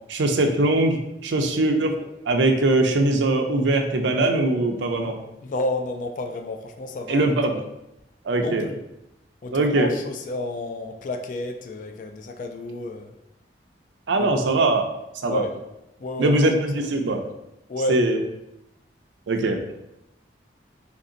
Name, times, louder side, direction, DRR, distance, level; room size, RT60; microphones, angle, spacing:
voice 1, 0.1-2.0 2.3-5.2 7.1-7.6 8.2-8.7 9.5-9.9 14.1-14.9 15.2-15.4 16.2-17.2 17.9-18.2 19.3-19.6, right 2 dB, 80° right, 5 dB, 0.5 m, -21 dB
voice 2, 5.4-7.3 8.4-8.8 9.4-13.2 14.2-14.4 15.2-15.6 16.0-16.4 16.8-16.9 17.7-18.0, left 1 dB, 45° left, 5 dB, 0.3 m, -30 dB
3.2 x 2.6 x 3.8 m, 0.87 s
head